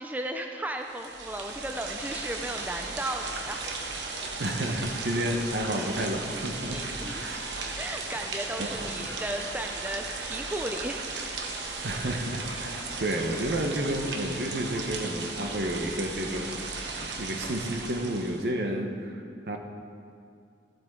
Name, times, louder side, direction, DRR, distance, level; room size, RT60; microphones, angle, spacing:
voice 1, 0.0-3.7 6.7-7.3 7.8-11.0, right 1 dB, 10° right, 4 dB, 0.4 m, -35 dB
je waterdrips, 0.8-18.5, right 3 dB, 90° right, 1.1 m, -36 dB
voice 2, 4.4-6.8 7.0-7.7 8.6-9.1 11.8-16.6 17.0-19.6, right 1 dB, 65° right, 3 dB, 1.0 m, -31 dB
14.5 x 7.8 x 3.7 m, 2.4 s
head